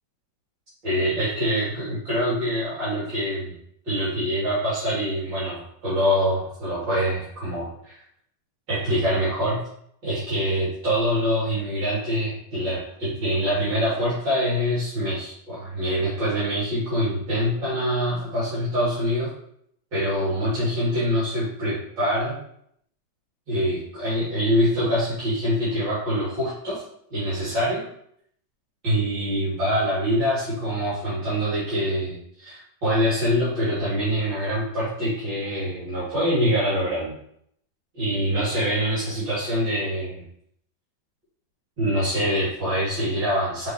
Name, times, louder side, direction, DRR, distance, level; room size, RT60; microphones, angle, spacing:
voice 1, 0.8-3.5 3.8-8.0 8.7-9.6 10.0-19.3 19.9-22.4 23.5-26.8 27.1-27.8 28.8-37.1 37.9-40.2 41.8-43.7, equal, 75° right, -11 dB, 3.7 m, -25 dB
6.5 x 4.8 x 3.2 m, 0.69 s
omnidirectional pair, 2.0 m